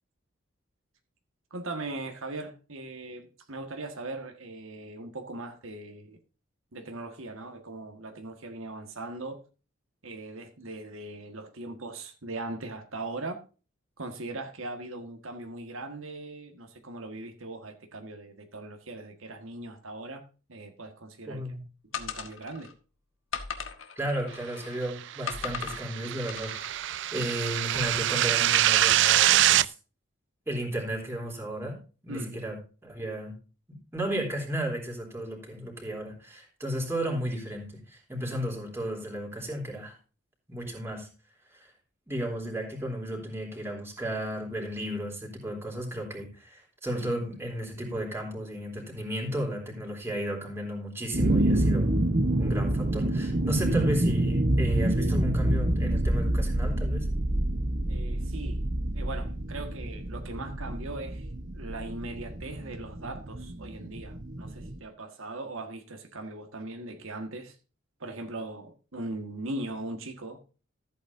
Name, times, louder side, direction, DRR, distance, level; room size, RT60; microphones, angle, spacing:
voice 1, 1.5-6.2 6.7-9.4 10.0-13.4 14.0-20.2 20.5-21.4 21.8-22.7 32.1-32.3 57.9-58.6 58.9-61.3 61.5-67.5 68.0-70.4, right 2 dB, 75° right, 1.7 m, -39 dB
voice 2, 21.3-21.6 24.0-29.7 30.5-32.6 32.8-33.3 33.9-40.0 40.5-41.1 41.5-41.7 42.1-51.9 52.4-57.1, equal, 10° right, 3.4 m, -34 dB
sound 1, 21.9-22.7 23.3-24.8 25.3-25.8 26.3-26.7, left 7 dB, 65° left, 1.5 m, -37 dB
sound 2, 25.2-29.7, right 13 dB, 60° right, 0.4 m, -24 dB
sound 3, 51.1-64.8, right 1 dB, 35° right, 0.9 m, -27 dB
14.5 x 8.6 x 2.7 m
head